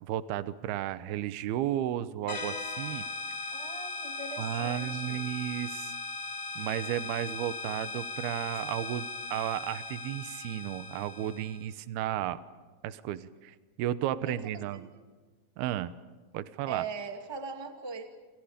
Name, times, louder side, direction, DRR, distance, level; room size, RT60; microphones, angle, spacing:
voice 1, 0.0-3.0 4.4-6.0 6.6-12.4 12.8-14.9 15.6-15.9 16.3-16.8, right 12 dB, 80° right, 13 dB, 2.8 m, -33 dB
sound 1, 2.3-11.7, left 3 dB, 75° left, 0.6 m, -38 dB
voice 2, 3.5-5.2 14.2-15.0 16.6-18.1, right 5 dB, 10° right, 5 dB, 1.4 m, -40 dB
29.0 x 28.0 x 5.2 m, 1.4 s
omnidirectional pair, 4.6 m